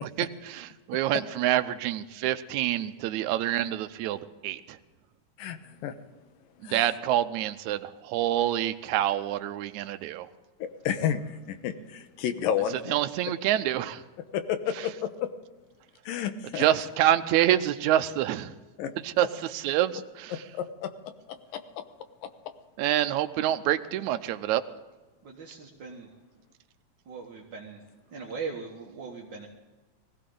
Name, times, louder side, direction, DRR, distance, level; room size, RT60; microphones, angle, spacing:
voice 1, 0.0-4.8 6.6-10.3 12.9-14.0 16.6-18.5 19.0-20.4 22.8-24.6, right 12 dB, 75° right, 10 dB, 1.8 m, -27 dB
voice 2, 5.4-5.9 6.6-6.9 10.6-13.0 14.3-15.3 16.1-16.7 18.8-18.9 20.5-20.9 21.3-21.6 22.2-22.3, left 9 dB, 85° left, 9 dB, 2.7 m, -31 dB
voice 3, 25.2-26.1 27.1-27.8 28.1-29.5, right 5 dB, 50° right, -2 dB, 1.4 m, -39 dB
20.0 x 16.0 x 3.9 m, 1.2 s
omnidirectional pair, 3.9 m